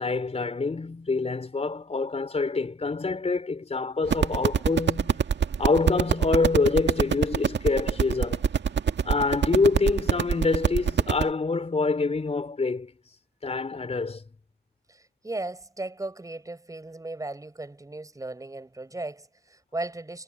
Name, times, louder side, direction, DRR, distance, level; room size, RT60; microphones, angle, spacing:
voice 1, 0.0-5.2 5.6-8.5 9.0-12.9 13.4-14.2, left 4 dB, 35° left, 4.4 m, -26 dB
sound 1, 4.1-11.2, right 7 dB, 70° right, 1.8 m, -24 dB
voice 2, 14.9-20.2, right 2 dB, 20° right, 6.7 m, -36 dB
wide cardioid pair, 110°, 19 cm